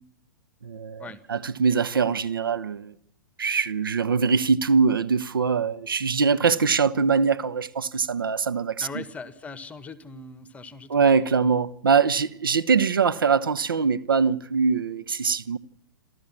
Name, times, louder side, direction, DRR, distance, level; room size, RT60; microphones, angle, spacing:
voice 1, 0.6-2.9 3.4-8.9 10.9-15.6, right 5 dB, 80° right, 1.0 m, -23 dB
voice 2, 8.8-11.0 11.4-11.6, left 4 dB, 10° left, 1.6 m, -40 dB
27.5 x 12.5 x 7.5 m
hypercardioid pair, 115°, 11 cm